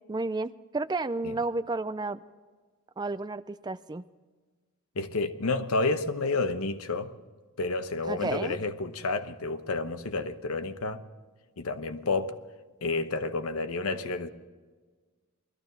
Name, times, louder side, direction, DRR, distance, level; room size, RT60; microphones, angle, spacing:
voice 1, 0.1-2.2 3.0-4.0 8.1-8.6, right 3 dB, 20° right, 0.4 m, -32 dB
voice 2, 4.9-7.1 7.6-11.0 11.6-12.4 12.8-14.3, left 3 dB, 80° left, 1.0 m, -30 dB
21.0 x 14.0 x 4.0 m
head